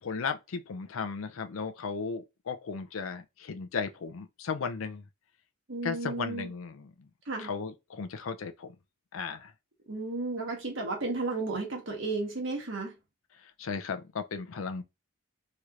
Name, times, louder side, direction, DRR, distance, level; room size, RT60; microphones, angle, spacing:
voice 1, 0.0-5.0 5.8-7.1 7.4-8.8 9.1-9.5 13.4-14.8, left 5 dB, 75° left, 0.5 m, -35 dB
voice 2, 5.7-6.5 7.3-7.5 9.9-12.9, right 3 dB, 60° right, 1.2 m, -33 dB
3.1 x 2.9 x 2.4 m
head